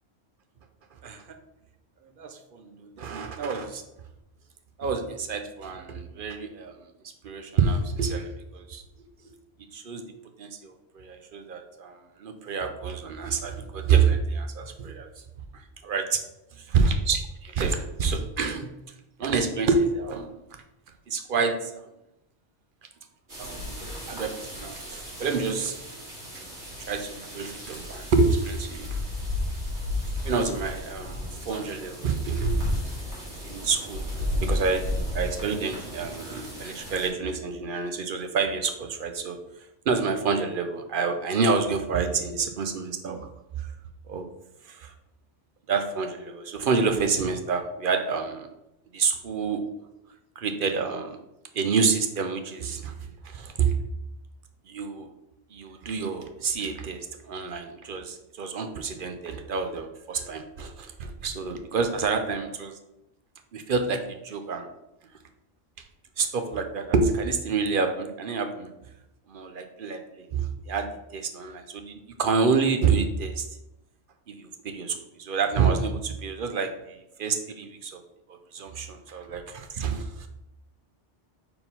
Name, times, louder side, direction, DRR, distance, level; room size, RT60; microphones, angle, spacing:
voice 1, 2.0-3.8 4.8-6.8 7.0-8.8 9.2-9.3 9.7-10.0 10.4-15.1 15.5-16.2 16.5-18.7 19.2-20.4 21.1-21.9 23.4-25.8 26.3-26.4 26.8-29.0 30.2-32.6 33.4-34.1 34.4-39.4 39.9-43.3 43.6-43.7 44.1-44.3 44.6-44.9 45.7-48.5 48.9-49.6 50.4-51.2 51.5-52.9 53.2-53.7 54.7-55.1 55.5-62.8 63.5-64.7 66.2-68.7 69.3-70.9 71.1-73.5 74.3-78.0 78.3-80.3, right 5 dB, 55° right, 6 dB, 0.7 m, -28 dB
sound 1, 23.3-37.1, left 1 dB, 75° right, 2.5 m, -33 dB
4.6 x 3.9 x 5.2 m, 0.89 s
omnidirectional pair, 1.2 m